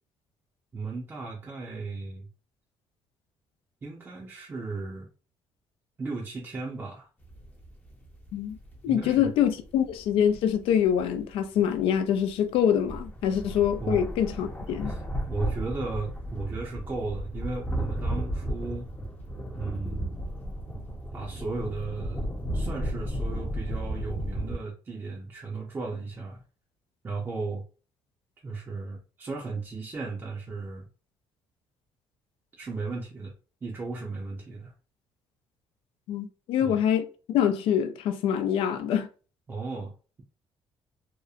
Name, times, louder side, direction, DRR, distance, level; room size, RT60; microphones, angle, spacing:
voice 1, 0.7-2.3 3.8-5.1 6.0-7.1 8.9-9.3 13.8-14.0 14.8-18.9 19.5-20.2 21.1-26.4 27.0-27.6 28.4-30.9 32.5-33.3 33.6-34.7 36.6-36.8 39.5-39.9, right 3 dB, 25° right, 0.5 m, -35 dB
sound 1, 7.2-11.4 11.7-11.9 12.2-12.3 12.5-12.6 12.8-24.6, right 1 dB, 20° left, 0.6 m, -34 dB
voice 2, 8.8-15.0 36.1-39.1, left 9 dB, 85° left, 0.4 m, -25 dB
2.8 x 2.0 x 2.4 m
cardioid pair, 135°, 9 cm